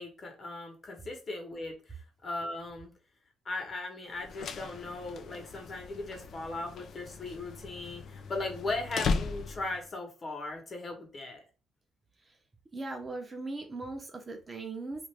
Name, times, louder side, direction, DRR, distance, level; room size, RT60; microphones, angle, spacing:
voice 1, 0.0-2.9 3.4-11.4, left 2 dB, 40° left, 3 dB, 1.0 m, -38 dB
sound 1, 4.1-9.9, left 4 dB, 60° left, 0.4 m, -37 dB
voice 2, 12.7-15.1, right 3 dB, 30° right, 4 dB, 0.7 m, -39 dB
2.5 x 2.5 x 3.2 m, 0.34 s
cardioid pair, 90°, 0 cm